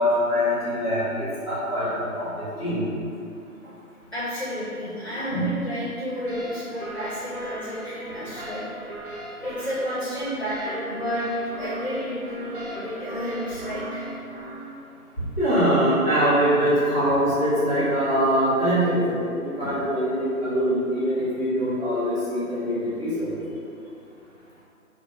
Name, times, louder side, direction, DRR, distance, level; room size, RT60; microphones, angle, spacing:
voice 1, 0.0-1.9 2.1-2.3 2.6-2.8 5.3-5.5 15.4-23.3, equal, ahead, -16 dB, 1.4 m, -23 dB
voice 2, 4.1-8.7 9.4-11.3 11.6-14.1, equal, 45° left, -9 dB, 0.7 m, -31 dB
sound 1, 6.3-14.6, right 1 dB, 40° right, 0.6 m, -37 dB
2.9 x 2.2 x 3.6 m, 2.6 s
figure-of-eight pair, 170°, 45 cm